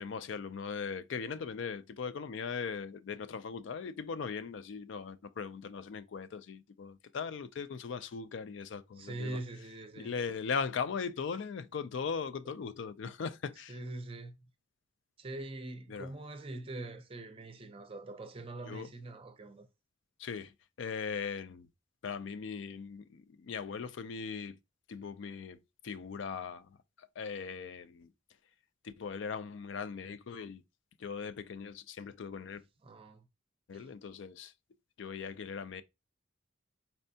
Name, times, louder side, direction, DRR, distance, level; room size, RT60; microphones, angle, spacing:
voice 1, 0.0-9.4 9.9-13.8 15.9-16.1 18.7-18.9 20.2-20.5 20.8-21.7 22.0-24.6 24.9-28.1 28.8-30.6 31.0-32.6 33.7-34.5 35.0-35.8, left 6 dB, 65° left, 0.4 m, -39 dB
voice 2, 9.0-10.1 13.7-14.3 15.2-19.7 32.8-33.2 33.7-33.9, right 2 dB, 25° right, 0.5 m, -43 dB
4.4 x 3.2 x 2.7 m
head